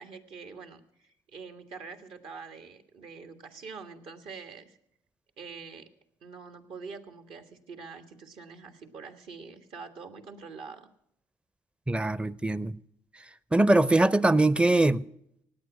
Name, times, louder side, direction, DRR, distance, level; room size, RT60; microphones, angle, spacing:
voice 1, 0.0-4.8 5.4-5.9 6.2-10.9, right 5 dB, 65° right, 1.5 m, -45 dB
voice 2, 11.9-12.8 13.5-15.0, right 2 dB, 10° right, 0.5 m, -22 dB
17.0 x 9.1 x 6.0 m
hypercardioid pair, 60°, 10 cm